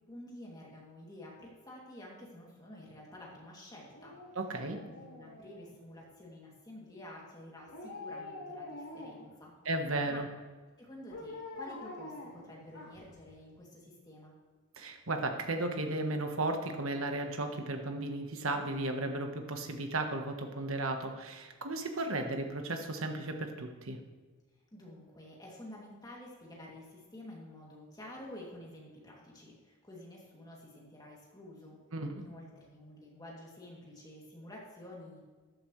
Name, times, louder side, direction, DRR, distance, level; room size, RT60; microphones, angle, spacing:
voice 1, 0.1-4.1 4.7-9.5 10.1-10.2 10.8-14.3 24.7-31.8 32.1-35.2, left 1 dB, 20° left, -3 dB, 2.7 m, -50 dB
Dog, 3.9-6.0 7.7-9.4 11.1-13.2 13.6-13.7, left 2 dB, 75° left, 3.1 m, -46 dB
voice 2, 4.3-4.8 9.6-10.3 14.8-24.0 31.9-32.2, right 2 dB, 65° right, 5 dB, 1.3 m, -35 dB
13.5 x 11.0 x 3.3 m, 1.4 s
head